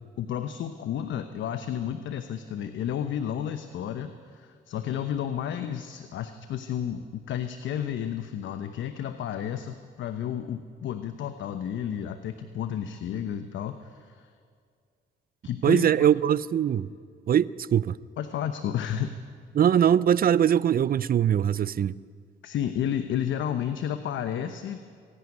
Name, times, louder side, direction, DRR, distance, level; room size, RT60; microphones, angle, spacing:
voice 1, 0.2-14.3 15.4-16.1 18.2-19.1 22.4-24.8, left 9 dB, 75° left, 1.0 m, -32 dB
voice 2, 15.6-16.9 17.3-18.0 19.5-22.0, right 9 dB, 45° right, 0.6 m, -22 dB
25.0 x 11.0 x 9.6 m
cardioid pair, 90°, 20 cm